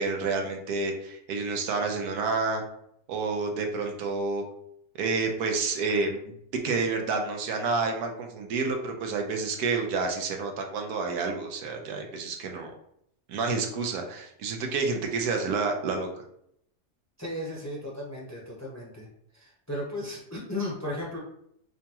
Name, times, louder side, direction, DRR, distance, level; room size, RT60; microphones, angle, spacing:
voice 1, 0.0-2.6 3.1-4.4 4.9-6.2 6.6-12.7 13.3-16.1, right 4 dB, 85° right, 3 dB, 1.2 m, -29 dB
voice 2, 17.2-19.1 19.3-21.2, left 1 dB, 15° left, -4 dB, 0.7 m, -35 dB
4.9 x 2.3 x 2.9 m, 0.73 s
omnidirectional pair, 1.6 m